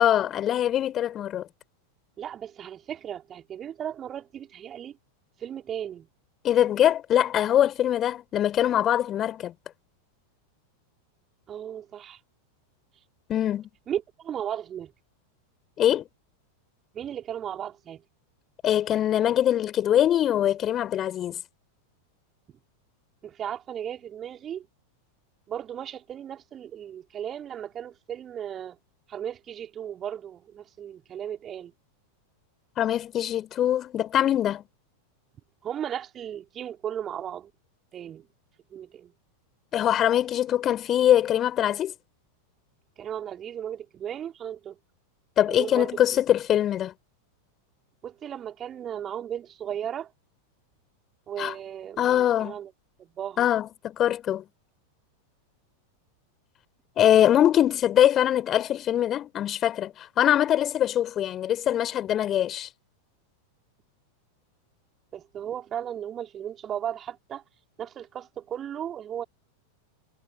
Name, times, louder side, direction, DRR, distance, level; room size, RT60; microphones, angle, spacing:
voice 1, 0.0-1.4 6.4-9.5 13.3-13.7 15.8-16.0 18.6-21.4 32.8-34.6 39.7-41.9 45.4-46.9 51.4-51.5 52.0-52.6 53.4-54.4 57.0-62.7, left 11 dB, 30° left, 5.0 m, -23 dB
voice 2, 2.2-5.0 5.4-6.1 11.5-12.2 13.9-14.9 16.9-18.0 23.2-24.7 25.5-28.8 29.1-31.7 35.6-37.5 37.9-38.2 38.7-39.1 43.0-44.8 45.5-46.0 48.0-50.1 51.3-52.7 53.0-53.5 65.1-67.4 67.8-69.2, right 9 dB, 25° right, 4.7 m, -35 dB
figure-of-eight pair, 90°, 0 cm